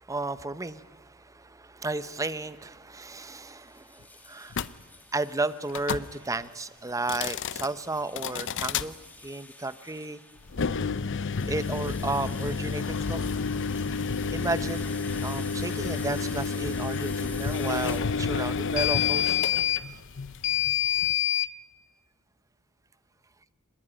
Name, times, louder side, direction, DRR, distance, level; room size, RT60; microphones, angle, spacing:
voice 1, 0.0-4.7 5.1-8.9 9.2-10.2 11.5-13.3 14.3-14.9 15.2-19.4 19.9-20.0, right 2 dB, 15° right, 14 dB, 0.7 m, -33 dB
sound 1, 3.2-18.0, left 2 dB, 10° left, 1.8 m, -49 dB
sound 2, 4.5-4.7 5.7-6.1 7.0-7.7 8.2-8.9 10.5-21.5, left 7 dB, 60° left, 0.7 m, -28 dB
26.0 x 20.0 x 9.9 m, 1.4 s
head